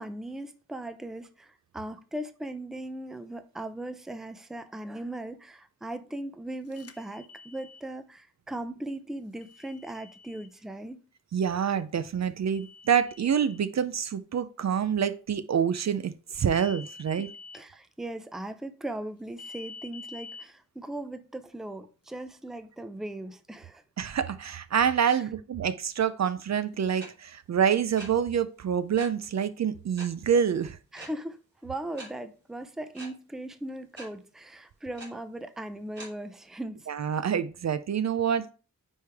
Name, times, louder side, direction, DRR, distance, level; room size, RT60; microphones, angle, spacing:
voice 1, 0.0-11.0 17.5-23.8 25.1-25.2 30.9-31.4 31.6-36.9, right 1 dB, ahead, 0.5 m, -38 dB
sound 1, 6.7-7.8 9.4-10.5 12.5-13.6 16.4-17.6 19.4-20.4, left 4 dB, 45° left, 0.6 m, -47 dB
voice 2, 11.3-17.3 24.0-30.8 36.9-38.5, right 8 dB, 55° right, 0.5 m, -27 dB
sound 2, 27.0-27.1 28.0-28.1 29.0-29.1 30.0-30.1 30.9-31.1 32.0-32.1 32.9-33.1 34.0-34.1 35.0-35.1 36.0-36.1, right 1 dB, 30° right, 3.0 m, -42 dB
9.6 x 3.3 x 3.4 m
wide cardioid pair, 95°, 34 cm